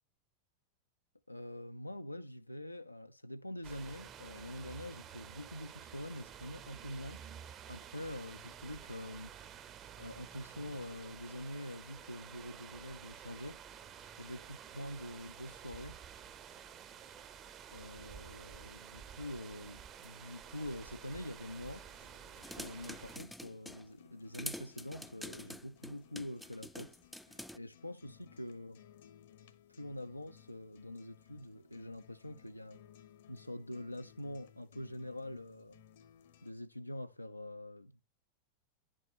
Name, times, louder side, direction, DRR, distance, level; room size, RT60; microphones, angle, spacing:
voice 1, 1.3-7.2 7.7-9.3 10.0-13.6 14.2-16.0 17.7-21.8 22.5-27.0 27.3-28.8 29.7-32.8 33.3-35.8 36.4-38.0, left 1 dB, 85° left, 0.4 m, -45 dB
sound 1, 3.6-23.2, right 8 dB, 30° right, 0.7 m, -51 dB
sound 2, 20.5-36.5, left 10 dB, 60° left, 0.8 m, -61 dB
sound 3, 22.4-23.9 24.3-27.6, left 1 dB, ahead, 0.4 m, -47 dB
10.5 x 5.4 x 3.0 m
figure-of-eight pair, 90°, 0 cm